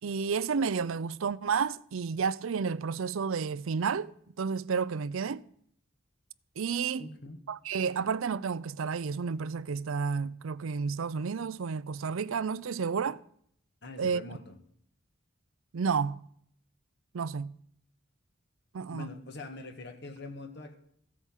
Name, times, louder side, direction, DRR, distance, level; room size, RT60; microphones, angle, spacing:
voice 1, 0.0-4.1 4.4-5.4 6.6-7.1 7.5-13.2 14.0-14.2 15.7-16.2 17.1-17.5 18.7-19.1, right 5 dB, 80° right, 0.5 m, -31 dB
voice 2, 7.0-7.4 13.8-14.6 18.9-20.8, left 2 dB, 55° left, 1.6 m, -43 dB
15.0 x 8.3 x 7.3 m
head